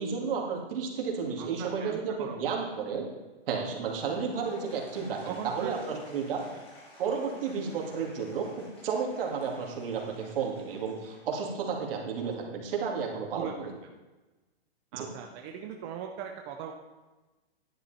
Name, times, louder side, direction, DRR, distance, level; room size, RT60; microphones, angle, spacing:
voice 1, 0.0-3.1 3.5-6.4 7.0-13.7 14.9-15.1, right 5 dB, 60° right, 0 dB, 2.6 m, -32 dB
voice 2, 1.4-2.4 5.3-6.0 13.3-13.5 14.9-16.7, right 8 dB, 25° right, 3 dB, 0.6 m, -39 dB
Applause / Crowd, 3.8-12.0, left 1 dB, 15° left, 2.6 m, -54 dB
10.5 x 8.2 x 4.3 m, 1.2 s
hypercardioid pair, 140°, 32 cm